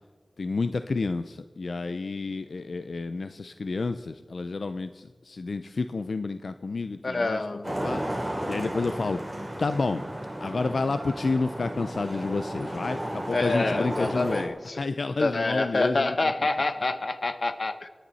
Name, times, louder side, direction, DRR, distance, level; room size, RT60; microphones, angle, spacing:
voice 1, 0.4-8.0 8.5-9.3 9.6-10.0 10.4-14.5 14.8-16.3, left 3 dB, 85° left, 10 dB, 0.5 m, -30 dB
voice 2, 7.0-7.7 13.3-14.8 15.2-17.9, left 2 dB, 60° left, 11 dB, 0.9 m, -27 dB
Traffic noise roadway noise, 7.6-14.5, right 1 dB, 15° right, 3.4 m, -33 dB
27.0 x 10.5 x 4.1 m, 1.5 s
wide cardioid pair, 80°, 0 cm